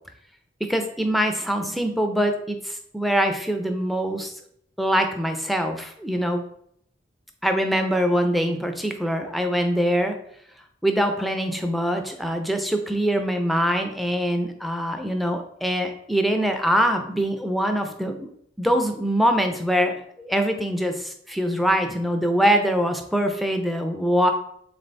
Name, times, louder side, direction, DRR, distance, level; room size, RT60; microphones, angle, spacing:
voice 1, 0.7-4.3 4.8-6.4 7.4-10.2 10.8-18.3 18.6-24.3, equal, ahead, 5 dB, 0.4 m, -23 dB
3.7 x 3.3 x 4.0 m, 0.69 s
head